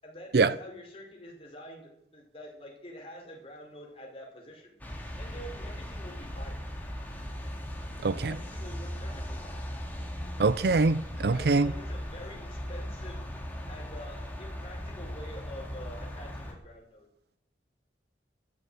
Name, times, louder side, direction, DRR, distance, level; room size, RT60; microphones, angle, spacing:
voice 1, 0.0-4.7 5.2-6.6 8.3-9.6 11.1-17.1, equal, 35° left, 5.0 m, -47 dB
sound 1, 4.8-16.5, equal, 10° left, 2.4 m, -38 dB
voice 2, 8.0-8.3 10.4-11.7, right 3 dB, 60° right, 0.5 m, -24 dB
14.0 x 7.7 x 9.4 m
head